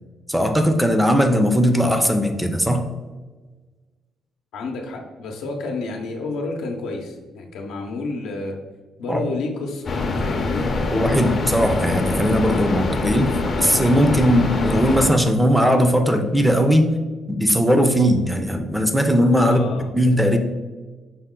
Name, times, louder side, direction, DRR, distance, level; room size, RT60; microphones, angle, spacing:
voice 1, 0.3-2.8 9.1-9.2 10.9-13.3 13.6-16.9 17.3-19.6 19.9-20.4, equal, 5° right, 5 dB, 0.5 m, -18 dB
voice 2, 4.5-8.6 9.0-9.9 10.2-10.6 19.4-19.9, left 3 dB, 85° left, 2 dB, 0.7 m, -30 dB
sound 1, 9.9-15.1, left 3 dB, 45° left, 0.6 m, -24 dB
5.5 x 2.1 x 3.7 m, 1.3 s
cardioid pair, 90°, 0 cm